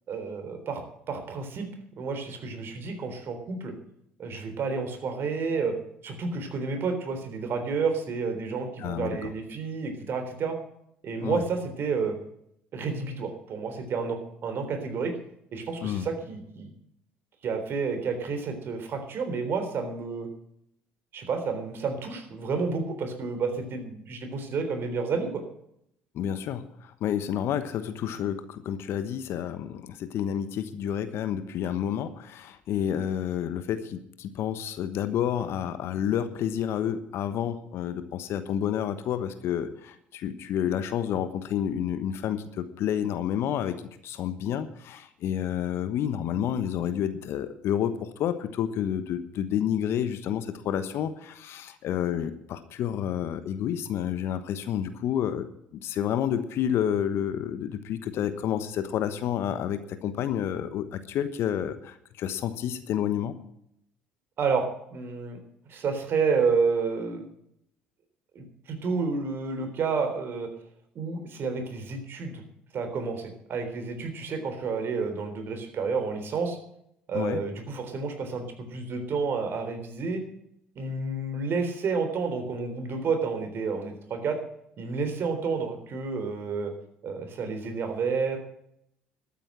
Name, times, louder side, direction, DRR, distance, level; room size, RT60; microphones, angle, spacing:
voice 1, 0.1-1.7 2.0-3.7 4.2-5.7 6.0-10.6 11.0-12.2 12.7-15.1 15.5-16.7 17.4-20.3 21.1-25.4 64.4-64.6 64.9-65.4 65.7-67.3 68.4-70.5 71.0-72.4 72.7-76.6 77.1-78.4 78.7-80.2 80.8-84.4 84.8-86.7 87.0-88.4, right 4 dB, 50° right, 6 dB, 3.7 m, -30 dB
voice 2, 8.8-9.3 11.2-11.4 15.8-16.1 26.1-55.5 55.7-63.3 77.1-77.4, left 9 dB, 60° left, 11 dB, 1.2 m, -29 dB
12.5 x 9.1 x 7.6 m, 0.74 s
hypercardioid pair, 60°, 5 cm